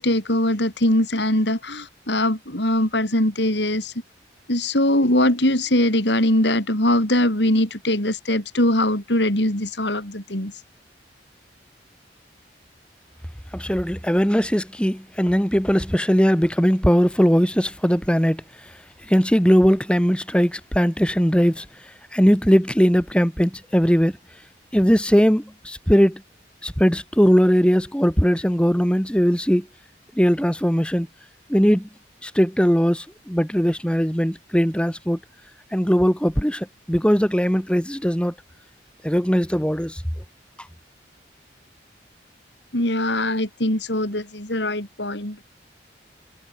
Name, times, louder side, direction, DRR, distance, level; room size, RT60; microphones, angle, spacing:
voice 1, 0.0-3.9 4.5-10.5 42.7-45.4, left 1 dB, 70° left, 6.1 m, -21 dB
voice 2, 13.5-18.7 19.0-24.2 24.7-26.2 26.6-29.7 30.1-31.1 31.5-31.9 32.2-35.2 35.7-38.3 39.0-40.0, equal, 5° left, 3.2 m, -19 dB
head